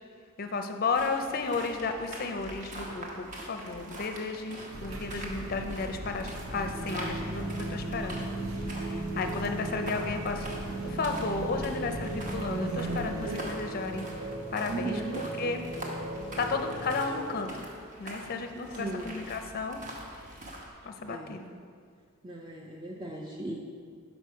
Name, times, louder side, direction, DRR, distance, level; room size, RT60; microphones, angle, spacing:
voice 1, 0.4-8.2 8.7-14.1 14.5-15.6 16.4-17.7 18.0-19.8 20.8-21.5, left 4 dB, 45° left, 6 dB, 0.5 m, -33 dB
sound 1, 0.9-20.7, right 1 dB, 40° right, 0.9 m, -44 dB
sound 2, 4.7-13.4, right 1 dB, 80° right, 0.7 m, -40 dB
sound 3, 6.5-17.4, right 2 dB, 55° right, 1.2 m, -37 dB
voice 2, 14.7-15.3 18.7-19.2 21.1-21.4 22.2-23.6, right 2 dB, 20° right, 0 dB, 0.4 m, -37 dB
6.0 x 5.2 x 4.6 m, 2.1 s
head